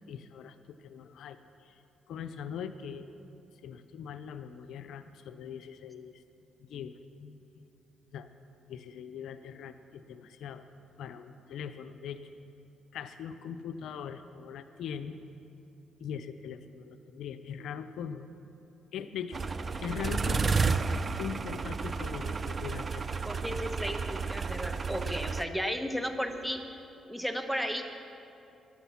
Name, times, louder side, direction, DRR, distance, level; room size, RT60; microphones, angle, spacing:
voice 1, 0.1-3.1 3.6-6.2 6.6-7.6 8.1-8.3 8.7-10.6 11.0-12.2 12.9-15.1 16.0-18.3 18.9-19.4 19.8-20.8 21.2-23.2, left 7 dB, 75° left, 10 dB, 0.6 m, -41 dB
sound 1, 19.3-25.4, right 4 dB, 35° right, 0.5 m, -32 dB
voice 2, 23.2-26.6 27.1-27.8, equal, 5° right, 6 dB, 1.1 m, -34 dB
15.5 x 11.5 x 5.9 m, 2.8 s
cardioid pair, 90°, 0 cm